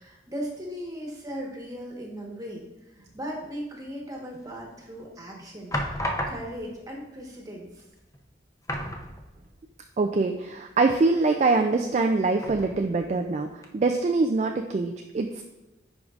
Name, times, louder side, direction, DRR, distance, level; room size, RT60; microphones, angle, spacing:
voice 1, 0.0-7.8, equal, 20° right, -1 dB, 1.2 m, -38 dB
sound 1, 4.5-4.9 5.7-6.8 7.7-7.8 8.1-8.3 8.6-9.6 10.0-10.1 12.4-13.1 13.6-13.7, left 1 dB, 20° left, 0.6 m, -33 dB
voice 2, 10.0-15.4, right 3 dB, 40° right, 4 dB, 0.3 m, -24 dB
10.5 x 4.7 x 2.4 m, 1.0 s
head